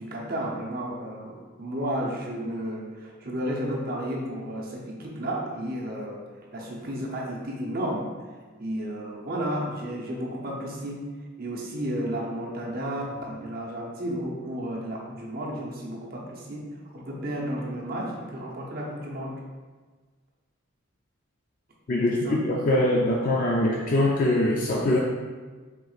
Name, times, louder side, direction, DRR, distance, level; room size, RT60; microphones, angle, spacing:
voice 1, 0.0-6.2 6.5-8.1 8.6-11.0 11.4-16.6 16.9-19.3 22.2-22.3, right 1 dB, 45° right, -3 dB, 0.7 m, -32 dB
voice 2, 21.9-25.0, left 1 dB, 40° left, -2 dB, 0.3 m, -23 dB
4.6 x 3.7 x 2.4 m, 1.4 s
head